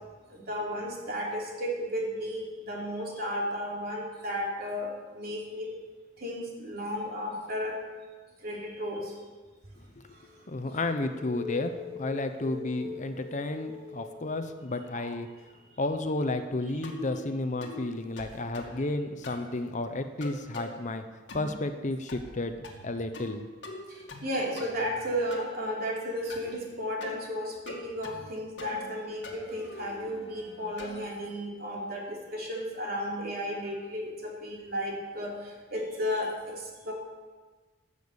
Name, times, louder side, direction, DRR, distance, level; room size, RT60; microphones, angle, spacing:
voice 1, 0.3-5.7 6.2-7.8 8.4-9.1 14.9-15.1 23.9-36.9, equal, 50° right, -2 dB, 3.2 m, -34 dB
voice 2, 9.8-10.1 10.5-15.3 15.8-21.0 21.3-23.4, left 2 dB, 40° left, 8 dB, 0.8 m, -32 dB
sound 1, 10.3-15.0 18.3-18.4, left 4 dB, 30° right, 2.0 m, -42 dB
sound 2, 16.8-17.2 17.6-17.9 18.2-18.8 19.2-19.5 20.2-20.7 21.3-21.6 22.1-22.4 22.6-23.4 23.6-24.3 24.6-25.5 26.3-26.5 27.0-27.2 27.7-28.3 28.6-28.9 29.2-31.0, left 2 dB, 65° left, 2.2 m, -43 dB
15.0 x 6.9 x 8.1 m, 1.3 s
head